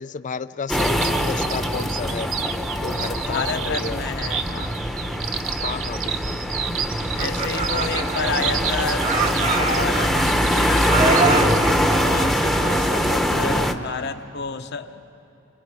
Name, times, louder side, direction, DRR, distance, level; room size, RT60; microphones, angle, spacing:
voice 1, 0.0-2.3 2.8-4.0 5.6-6.4, left 5 dB, 40° left, 13 dB, 0.5 m, -32 dB
sound 1, 0.7-13.7, equal, ahead, 1.0 m, -23 dB
sound 2, 0.8-11.6, right 8 dB, 85° right, 0.9 m, -31 dB
voice 2, 3.3-4.7 7.2-11.5 12.0-15.0, left 4 dB, 60° left, 8 dB, 1.0 m, -30 dB
Laughter, 7.0-8.7 9.0-10.5 10.9-13.1, right 4 dB, 40° right, 1.6 m, -25 dB
29.5 x 26.0 x 4.8 m, 3.0 s
head